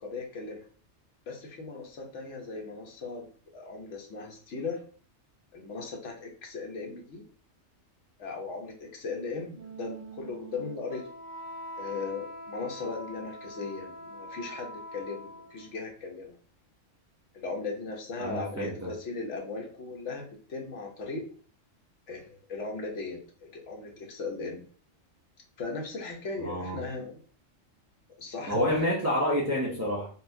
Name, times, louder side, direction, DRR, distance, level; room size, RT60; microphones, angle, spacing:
voice 1, 0.0-0.6 1.3-3.3 3.5-4.8 5.5-7.2 8.2-11.0 11.8-16.4 17.3-21.2 22.1-24.6 25.6-27.2 28.2-28.6, left 4 dB, 65° left, 1 dB, 1.1 m, -37 dB
Wind instrument woodwind instrument, 9.5-15.7, equal, 70° right, 0.9 m, -43 dB
voice 2, 18.2-18.9 26.4-26.8 28.5-30.1, equal, 25° right, -5 dB, 0.3 m, -28 dB
4.2 x 2.0 x 2.6 m, 0.43 s
omnidirectional pair, 1.3 m